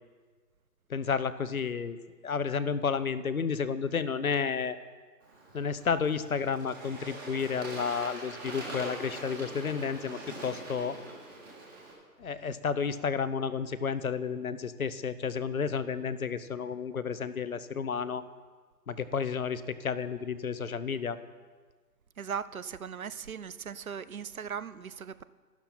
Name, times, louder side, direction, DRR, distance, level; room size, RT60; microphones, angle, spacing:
voice 1, 0.9-2.0 2.2-4.8 5.5-11.0 12.2-18.2 18.9-21.2, left 6 dB, 55° left, 0.8 m, -31 dB
Bird / Water, 5.2-11.9, right 2 dB, 15° right, 1.8 m, -43 dB
voice 2, 22.2-25.2, right 7 dB, 55° right, 0.6 m, -38 dB
13.0 x 12.0 x 4.3 m
figure-of-eight pair, 155°, 50 cm